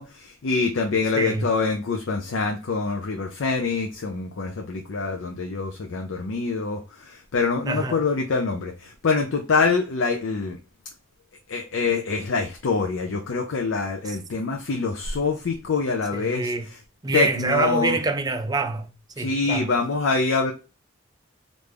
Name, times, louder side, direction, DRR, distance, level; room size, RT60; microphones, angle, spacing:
voice 1, 0.0-10.6 11.5-16.5 17.1-18.0 19.2-20.5, left 4 dB, 80° left, 0.5 m, -25 dB
voice 2, 1.1-1.5 7.6-8.0 14.0-14.2 16.1-16.7 17.0-19.7, right 3 dB, 20° right, 0.4 m, -26 dB
3.3 x 2.6 x 3.3 m
head